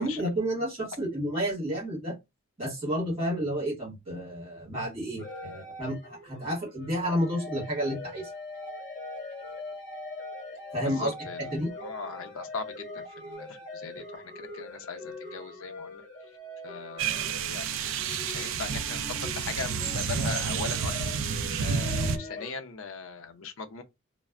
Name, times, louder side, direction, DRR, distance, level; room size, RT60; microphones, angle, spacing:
voice 1, 0.0-2.1 2.6-8.3 10.7-11.1 11.5-11.7, equal, 25° right, 1.7 m, -30 dB
sound 1, 5.2-22.5, left 2 dB, 35° left, 1.1 m, -42 dB
voice 2, 10.8-11.5 11.8-16.0 16.6-21.1 21.6-23.8, left 5 dB, 70° left, 0.5 m, -39 dB
sound 2, 17.0-22.2, right 6 dB, 60° right, 0.3 m, -30 dB
3.2 x 2.1 x 2.3 m
head